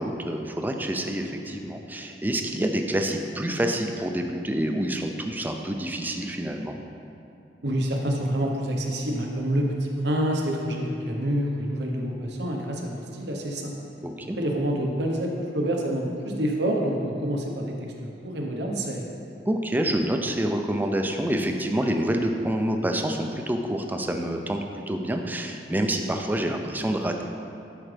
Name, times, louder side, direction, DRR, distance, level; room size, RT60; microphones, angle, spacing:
voice 1, 0.0-6.8 14.0-14.4 19.5-27.2, right 1 dB, 10° right, 3 dB, 0.5 m, -27 dB
voice 2, 7.6-13.7 14.4-17.7 18.0-19.1, right 1 dB, 80° right, 0 dB, 1.0 m, -27 dB
11.5 x 4.9 x 3.4 m, 2.6 s
head